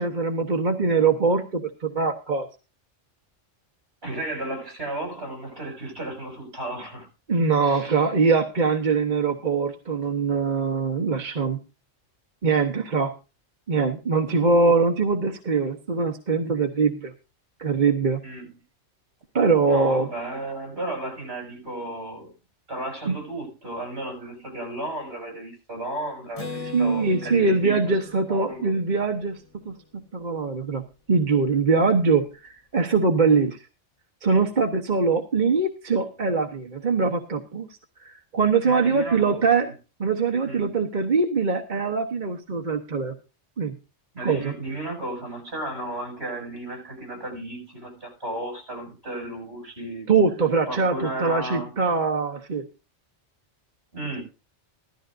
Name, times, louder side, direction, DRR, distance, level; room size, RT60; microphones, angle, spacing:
voice 1, 0.0-2.5 7.3-11.6 12.4-13.1 13.7-17.1 17.6-18.2 19.3-20.1 23.1-23.2 26.7-29.7 30.1-33.6 34.2-37.7 38.0-39.7 40.0-43.2 43.6-43.8 44.2-44.5 50.1-52.7, right 4 dB, 40° right, 1.1 m, -22 dB
voice 2, 4.0-7.1 7.6-8.1 18.2-18.5 19.6-22.3 22.7-28.0 28.3-28.7 38.6-39.7 40.4-40.7 44.1-50.1 50.7-51.7 53.9-54.2, right 1 dB, 60° right, 7.6 m, -34 dB
Acoustic guitar, 26.4-30.0, left 4 dB, 80° left, 2.0 m, -40 dB
16.0 x 13.5 x 2.6 m
omnidirectional pair, 1.2 m